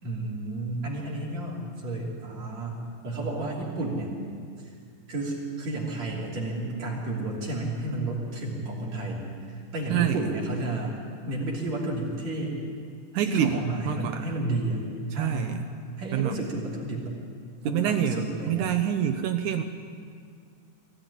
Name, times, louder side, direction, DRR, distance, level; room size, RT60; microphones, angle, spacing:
voice 1, 0.0-4.1 4.6-4.7 5.1-11.0 11.3-12.6 13.2-14.8 15.1-15.6 16.0-17.2 17.6-18.7, right 2 dB, 55° right, -4 dB, 4.3 m, -31 dB
voice 2, 9.9-10.2 13.1-14.3 15.1-15.7 16.1-16.4 17.7-19.6, right 9 dB, 75° right, 6 dB, 2.2 m, -27 dB
22.5 x 16.5 x 9.9 m, 2.2 s
omnidirectional pair, 3.7 m